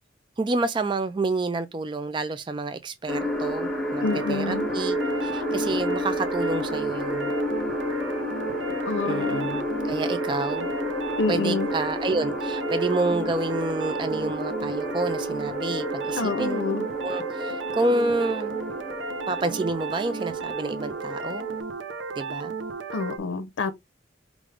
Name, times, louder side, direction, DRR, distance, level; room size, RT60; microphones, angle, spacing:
voice 1, 0.4-7.3 9.1-10.7 11.3-16.6 17.0-18.6 19.3-21.5 22.2-22.5, right 2 dB, 25° right, 0.3 m, -29 dB
sound 1, 3.1-21.6, equal, ahead, 1.0 m, -30 dB
voice 2, 4.0-4.7 8.9-9.6 11.2-11.7 16.2-16.8 22.9-23.7, left 3 dB, 85° left, 0.5 m, -27 dB
sound 2, 4.0-23.2, right 4 dB, 85° right, 0.7 m, -34 dB
4.9 x 2.5 x 3.2 m
head